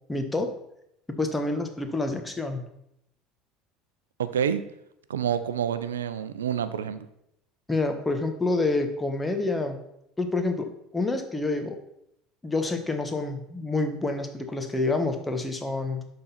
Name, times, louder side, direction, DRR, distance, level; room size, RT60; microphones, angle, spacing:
voice 1, 0.1-0.5 1.2-2.7 7.7-9.8 10.2-11.8 12.4-16.1, left 2 dB, 15° left, 6 dB, 1.3 m, -28 dB
voice 2, 4.2-4.6 5.1-7.0, right 8 dB, 85° right, 13 dB, 0.5 m, -28 dB
11.0 x 4.0 x 4.3 m, 0.78 s
hypercardioid pair, 70°, 0 cm